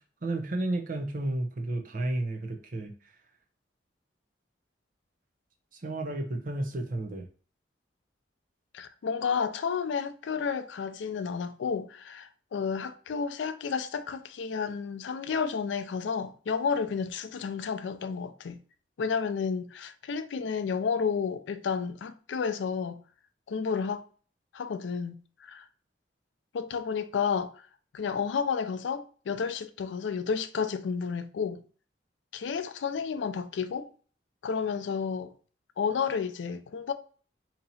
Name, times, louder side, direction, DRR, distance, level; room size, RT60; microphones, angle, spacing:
voice 1, 0.2-2.9 5.7-7.2, right 2 dB, 45° right, 0.7 m, -32 dB
voice 2, 8.7-18.6 19.0-23.0 23.5-24.0 24.5-25.1 25.5-25.7 26.5-27.5 27.9-31.6 32.3-33.9 34.4-35.3 35.8-36.9, left 6 dB, 80° left, 0.4 m, -31 dB
2.9 x 2.8 x 4.0 m
head